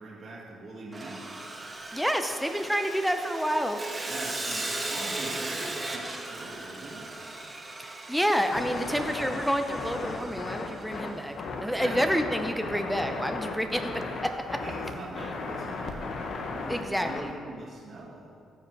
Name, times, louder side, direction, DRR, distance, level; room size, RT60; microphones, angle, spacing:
voice 1, 0.0-1.5 4.0-7.1 11.8-12.0 14.6-18.3, right 2 dB, 50° right, -5 dB, 1.9 m, -42 dB
Sawing, 0.9-11.2, right 2 dB, 25° right, 1.3 m, -37 dB
voice 2, 1.9-3.8 7.8-11.3 11.6-13.9 16.7-17.4, equal, ahead, 6 dB, 0.6 m, -28 dB
sound 1, 8.5-17.2, left 3 dB, 60° left, 1.1 m, -35 dB
14.0 x 5.7 x 4.7 m, 2.3 s
cardioid pair, 90°, 0 cm